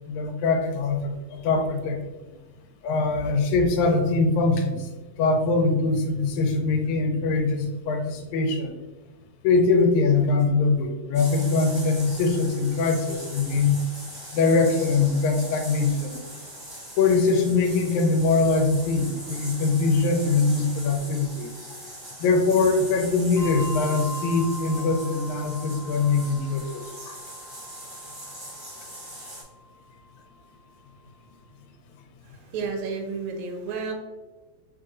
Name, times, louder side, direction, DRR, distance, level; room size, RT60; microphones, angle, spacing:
voice 1, 0.1-2.0 2.8-8.8 9.4-13.8 14.3-16.2 17.0-21.5 22.2-27.2, left 3 dB, 85° left, 4 dB, 1.9 m, -22 dB
sound 1, 11.1-29.4, equal, 35° right, 0.3 m, -41 dB
Bell, 23.4-30.2, left 1 dB, 60° right, 1.1 m, -40 dB
voice 2, 32.3-33.9, right 4 dB, 90° right, 3 dB, 2.0 m, -32 dB
4.6 x 3.8 x 2.5 m, 1.2 s
omnidirectional pair, 3.3 m